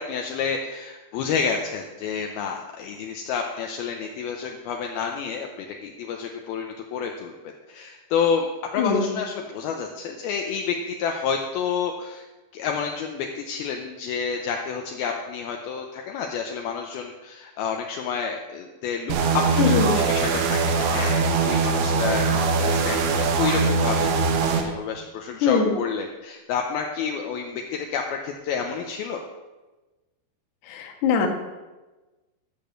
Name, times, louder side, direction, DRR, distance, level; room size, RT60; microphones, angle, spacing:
voice 1, 0.0-7.3 7.7-8.5 8.7-12.3 12.5-29.2, left 6 dB, 80° left, 2 dB, 2.2 m, -29 dB
voice 2, 8.8-9.1 19.6-20.0 25.4-25.8 30.6-31.3, left 5 dB, 65° left, 3 dB, 2.1 m, -21 dB
sound 1, 19.1-24.6, right 4 dB, 80° right, 3.3 m, -22 dB
13.0 x 6.9 x 6.4 m, 1.2 s
omnidirectional pair, 5.3 m